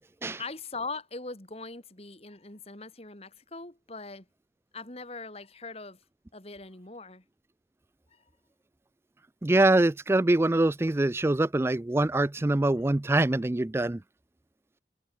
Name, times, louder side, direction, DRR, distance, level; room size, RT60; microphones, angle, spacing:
voice 1, 0.4-4.3 4.7-6.0 6.3-7.2 8.1-8.2, left 3 dB, 35° left, 3.1 m, -41 dB
voice 2, 9.4-14.0, right 2 dB, 15° right, 0.4 m, -24 dB
head